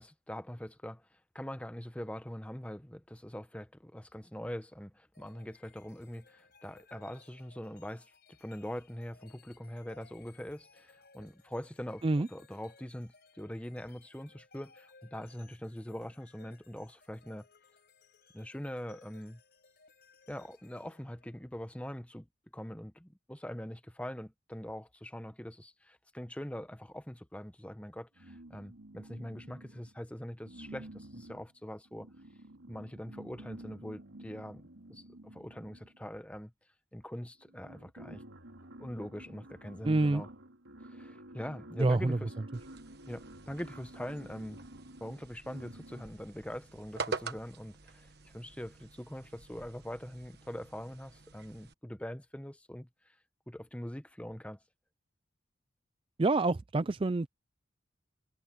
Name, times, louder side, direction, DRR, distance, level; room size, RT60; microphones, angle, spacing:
voice 1, 0.0-8.1 8.4-12.0 12.3-17.5 18.3-19.4 20.3-22.3 22.5-32.1 32.7-34.6 34.9-36.5 36.9-38.2 38.8-40.3 40.9-42.3 43.1-44.6 45.0-53.1 53.5-54.6, equal, 5° left, 0.9 m, -43 dB
sound 1, 5.1-21.8, left 5 dB, 50° left, 6.3 m, -63 dB
My Starving Stomach Moans, 28.2-30.0 30.4-36.1 37.0-37.1 37.4-46.3, right 1 dB, 90° right, 3.6 m, -51 dB
voice 2, 39.8-40.2 41.8-42.2 56.2-57.3, right 2 dB, 25° right, 0.4 m, -27 dB
sound 2, 42.5-51.7, right 4 dB, 50° right, 1.4 m, -46 dB
head